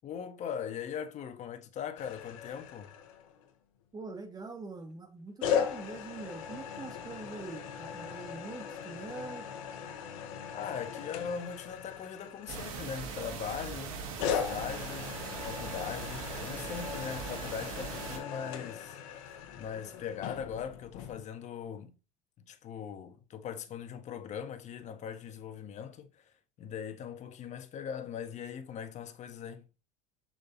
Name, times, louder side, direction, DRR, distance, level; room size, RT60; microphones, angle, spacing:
voice 1, 0.0-3.0 10.5-15.1 15.4-22.0 22.4-26.3 26.6-29.6, left 7 dB, 45° left, 1.5 m, -40 dB
sound 1, 2.0-3.5 5.4-13.2 14.2-21.2, left 7 dB, 75° left, 1.5 m, -38 dB
voice 2, 3.9-9.5, right 3 dB, 20° right, 2.1 m, -44 dB
sound 2, 12.5-18.2, right 5 dB, 85° right, 2.1 m, -40 dB
6.8 x 5.2 x 4.1 m
supercardioid pair, 100°, 17 cm